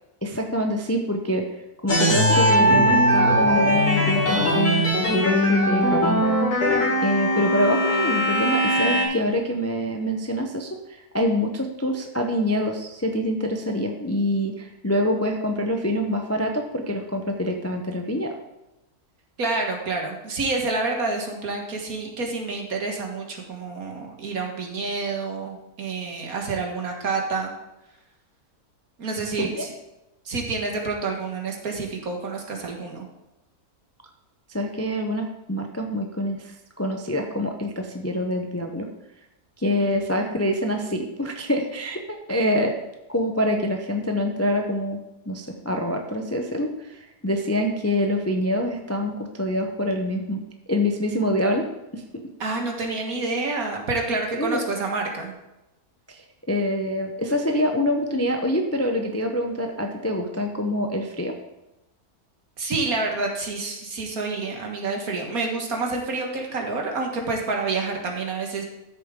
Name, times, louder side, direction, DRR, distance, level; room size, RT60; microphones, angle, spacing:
voice 1, 0.2-1.5 1.8-6.2 7.0-18.4 29.4-29.5 34.5-38.9 39.6-42.8 43.1-45.0 45.3-50.4 50.7-51.7 51.9-52.0 54.3-54.6 56.1-61.4, left 1 dB, 15° left, 3 dB, 0.5 m, -25 dB
sound 1, 1.9-9.0, equal, 85° left, 3.1 m, -20 dB
voice 2, 19.4-27.5 29.0-29.7 30.3-33.1 39.8-39.9 52.4-55.3 62.6-68.6, right 3 dB, 65° right, 1 dB, 2.0 m, -28 dB
13.5 x 6.9 x 3.7 m, 0.95 s
omnidirectional pair, 1.6 m